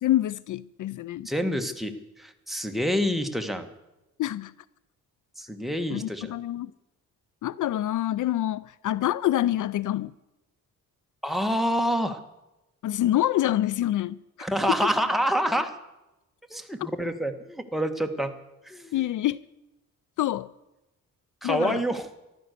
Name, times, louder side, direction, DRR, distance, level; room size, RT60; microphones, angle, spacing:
voice 1, 0.0-1.3 4.2-4.5 5.9-6.7 7.4-10.1 12.8-14.5 16.8-16.9 18.9-19.4 20.2-20.5 21.4-21.8, left 13 dB, 65° left, 0.5 m, -26 dB
voice 2, 1.2-3.7 5.4-6.3 11.2-12.2 14.4-15.7 16.5-18.3 18.6-19.0 21.4-22.1, equal, ahead, 1.6 m, -27 dB
14.0 x 12.5 x 6.7 m
cardioid pair, 90°, 33 cm